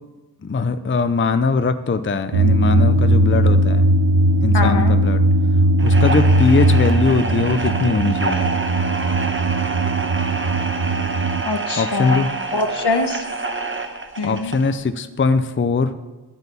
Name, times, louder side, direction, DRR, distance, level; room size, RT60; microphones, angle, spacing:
voice 1, 0.4-3.9 4.4-5.2 5.8-8.5 11.8-12.3 14.2-15.9, left 4 dB, 30° left, 11 dB, 0.5 m, -21 dB
sound 1, 2.3-11.4, right 1 dB, 85° right, 0.6 m, -18 dB
voice 2, 4.5-5.0 11.4-12.2 12.5-13.2 14.2-14.5, left 3 dB, 70° left, 7 dB, 1.3 m, -23 dB
sound 2, 5.8-14.7, right 3 dB, 30° right, 1.1 m, -27 dB
11.0 x 8.1 x 6.8 m, 1.2 s
wide cardioid pair, 85°, 41 cm